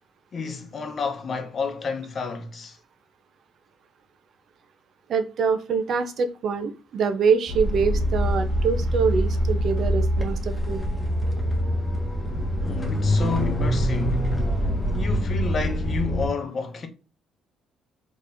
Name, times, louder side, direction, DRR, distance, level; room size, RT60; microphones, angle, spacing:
voice 1, 0.3-2.8 12.6-14.3 14.6-16.9, left 5 dB, 45° left, 0.8 m, -30 dB
voice 2, 5.1-10.8, right 5 dB, 60° right, 0.6 m, -25 dB
sound 1, 7.5-16.3, equal, 15° left, 1.1 m, -24 dB
3.9 x 3.0 x 2.6 m
cardioid pair, 85°, 0 cm